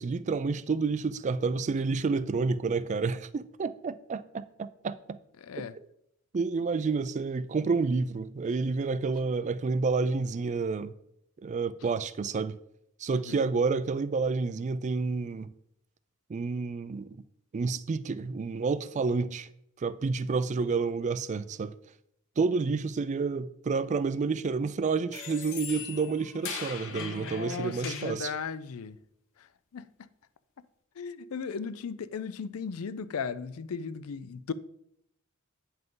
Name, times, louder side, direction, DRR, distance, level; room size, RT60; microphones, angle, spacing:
voice 1, 0.0-5.2 5.6-5.7 6.3-10.9 11.4-12.6 13.0-15.5 16.3-17.2 17.5-19.5 19.8-21.7 22.4-28.3, right 4 dB, 35° right, 0.3 m, -29 dB
voice 2, 5.4-5.7 13.1-13.4 26.9-29.0 29.7-29.9 31.0-34.5, left 6 dB, 80° left, 0.4 m, -36 dB
sound 1, 25.1-28.2, left 6 dB, 65° left, 0.9 m, -40 dB
9.0 x 5.6 x 3.8 m
head